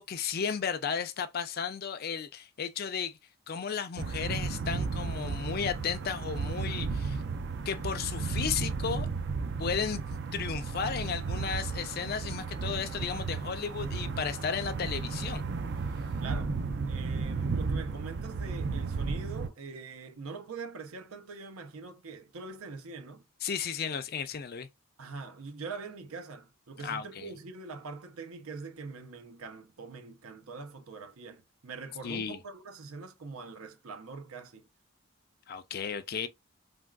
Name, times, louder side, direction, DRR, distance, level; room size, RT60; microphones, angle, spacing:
voice 1, 0.0-3.2 3.5-7.2 7.7-9.1 9.6-15.4 23.4-24.7 26.8-27.3 32.0-32.4 35.5-36.3, left 6 dB, 45° left, 0.4 m, -34 dB
sound 1, 4.0-19.5, right 4 dB, 55° right, 0.4 m, -34 dB
voice 2, 16.2-16.6 16.9-23.2 25.0-34.6, right 4 dB, 90° right, 0.7 m, -43 dB
3.5 x 2.3 x 2.2 m
head